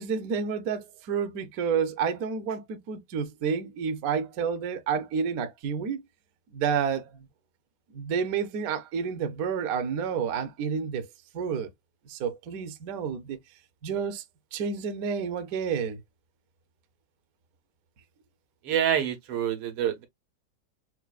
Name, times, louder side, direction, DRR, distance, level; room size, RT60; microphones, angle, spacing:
voice 1, 0.0-6.0 6.5-7.3 7.9-11.1 11.3-11.7 12.1-13.4 13.8-14.2 14.5-16.0, right 6 dB, 65° right, 0.9 m, -30 dB
voice 2, 18.7-20.1, right 9 dB, 90° right, 2.0 m, -27 dB
5.8 x 2.3 x 2.3 m
omnidirectional pair, 2.3 m